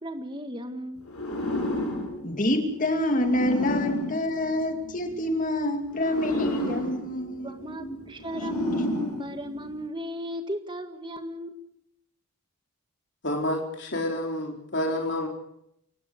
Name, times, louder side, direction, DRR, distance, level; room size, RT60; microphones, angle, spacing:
voice 1, 0.0-1.1 7.4-11.6, equal, 20° right, 7 dB, 1.8 m, -35 dB
sound 1, 1.0-5.2 5.9-9.9, left 1 dB, 85° left, 7.2 m, -32 dB
voice 2, 2.2-8.0, left 1 dB, 35° left, 5 dB, 2.6 m, -27 dB
voice 3, 13.2-15.3, left 1 dB, 55° left, 0 dB, 4.2 m, -29 dB
29.0 x 16.5 x 6.5 m, 0.74 s
head